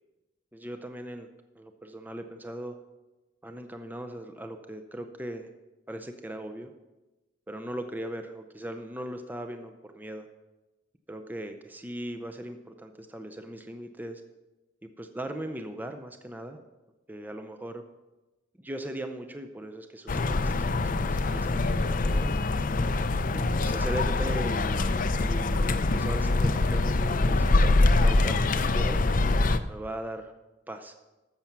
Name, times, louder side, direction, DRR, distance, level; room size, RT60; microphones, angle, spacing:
voice 1, 0.5-1.3 1.6-2.8 3.4-5.5 5.9-6.7 7.5-10.3 11.1-14.2 14.8-16.6 17.1-17.8 18.6-22.3 23.3-28.4 28.7-29.0 29.7-30.3 30.7-30.9, right 1 dB, 10° right, 7 dB, 0.6 m, -39 dB
sound 1, 20.1-29.6, left 2 dB, 45° left, 0.5 m, -24 dB
13.5 x 7.1 x 6.0 m, 1.1 s
head